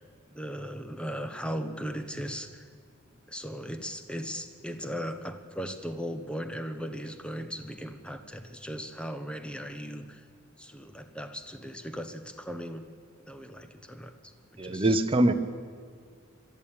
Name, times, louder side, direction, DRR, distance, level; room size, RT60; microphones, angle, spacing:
voice 1, 0.3-2.7 3.3-10.3 10.6-12.9 13.3-15.0, equal, 5° left, 8 dB, 1.1 m, -38 dB
voice 2, 14.6-15.3, right 1 dB, 25° right, 7 dB, 0.9 m, -23 dB
22.0 x 13.0 x 8.9 m, 2.2 s
head